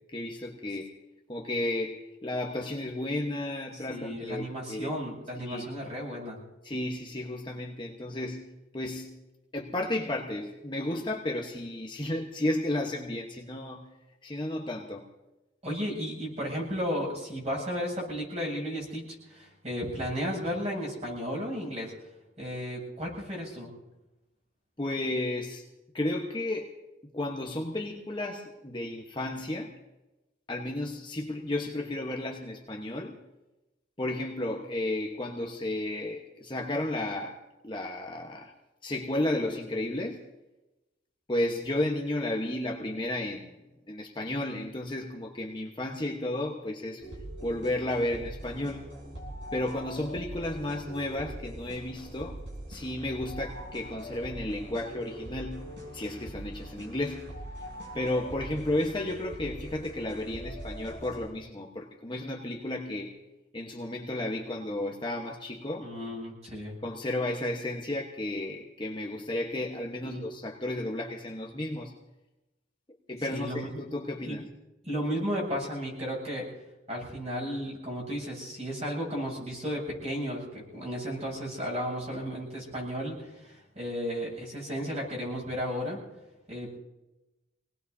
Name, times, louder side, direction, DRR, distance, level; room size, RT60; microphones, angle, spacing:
voice 1, 0.1-0.9 1.3-4.9 5.5-5.7 6.6-9.2 9.5-13.9 14.2-15.0 24.8-25.6 25.9-26.7 27.1-29.7 30.5-33.2 34.0-37.4 37.6-38.5 38.8-40.2 41.3-43.5 43.9-47.0 47.4-48.8 49.5-52.4 52.7-57.3 57.9-63.2 63.5-65.9 66.8-71.9 73.1-74.5, left 1 dB, 25° left, 0 dB, 1.1 m, -33 dB
voice 2, 3.9-6.4 15.6-21.9 22.4-23.7 65.8-66.7 70.0-70.2 73.3-73.8 74.3-74.4 74.8-76.4 76.9-86.0 86.5-86.8, equal, 35° right, -2 dB, 7.7 m, -34 dB
sound 1, 47.0-61.3, right 1 dB, 75° right, 6.4 m, -42 dB
27.0 x 19.0 x 2.8 m, 1.0 s
head